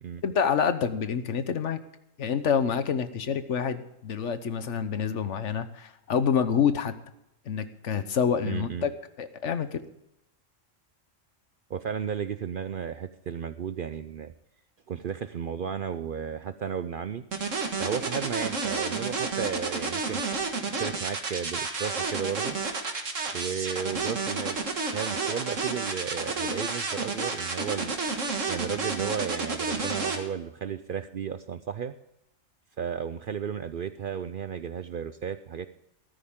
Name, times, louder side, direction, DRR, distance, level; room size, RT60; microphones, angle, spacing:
voice 1, 0.2-1.8 2.2-6.9 7.5-8.9 9.2-9.8, left 7 dB, 65° left, 12 dB, 1.2 m, -27 dB
voice 2, 8.4-8.9 11.7-14.3 14.9-17.2 17.8-20.2 20.7-22.6 23.3-24.6 24.9-27.9 28.5-31.9 32.8-35.7, right 7 dB, 55° right, 11 dB, 0.6 m, -33 dB
sound 1, 17.3-30.2, right 4 dB, 70° right, 2.0 m, -30 dB
14.5 x 13.0 x 3.6 m, 0.84 s
omnidirectional pair, 1.3 m